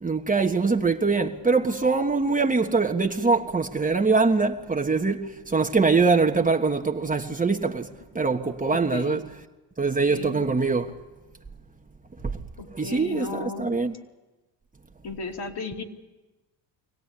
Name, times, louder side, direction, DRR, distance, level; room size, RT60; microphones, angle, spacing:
voice 1, 0.0-9.2 9.8-11.0 12.2-12.4 12.7-13.9, right 4 dB, 15° right, 1.4 m, -23 dB
voice 2, 8.7-9.2 10.1-10.5 12.6-13.8 15.0-15.8, left 3 dB, 55° left, 3.0 m, -35 dB
24.5 x 17.5 x 9.9 m
supercardioid pair, 80°, 48 cm